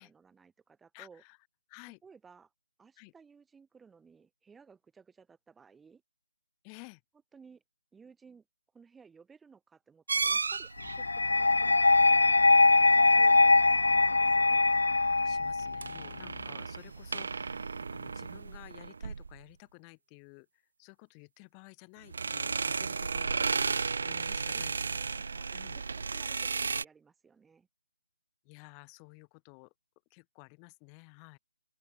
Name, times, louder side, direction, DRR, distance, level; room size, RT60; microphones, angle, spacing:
voice 1, 0.0-1.2 2.0-2.5 2.8-6.0 7.3-7.6 7.9-8.4 8.7-11.8 12.9-13.6 13.9-14.6 26.1-27.7, right 5 dB, 5° right, 4.7 m, -58 dB
voice 2, 0.9-1.4 1.7-2.0 3.0-3.1 6.6-7.0 15.2-23.5 24.0-24.7 25.5-25.8 28.4-29.7 30.1-31.4, left 40 dB or more, 20° left, 5.0 m, -53 dB
sound 1, 10.1-11.0 15.6-19.4 22.1-26.8, right 4 dB, 55° right, 0.8 m, -34 dB
sound 2, 10.8-18.4, left 6 dB, 50° left, 4.5 m, -49 dB
sound 3, 10.9-15.9, left 3 dB, 70° left, 0.6 m, -22 dB
open air
figure-of-eight pair, 145°, 0 cm